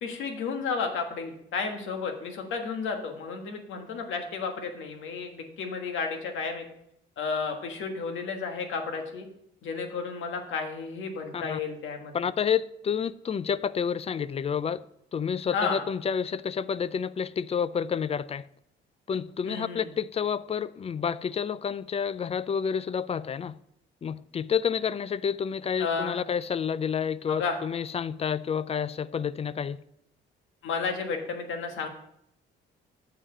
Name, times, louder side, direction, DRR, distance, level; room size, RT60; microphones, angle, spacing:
voice 1, 0.0-6.6 7.2-9.3 9.6-12.1 15.5-15.8 19.4-19.9 25.8-26.2 27.3-27.6 30.6-31.9, left 5 dB, 80° left, 1.4 m, -32 dB
voice 2, 12.1-14.8 15.1-18.5 19.1-23.6 24.0-29.8, left 7 dB, 30° left, 0.4 m, -29 dB
7.5 x 4.8 x 6.5 m
cardioid pair, 90°, 20 cm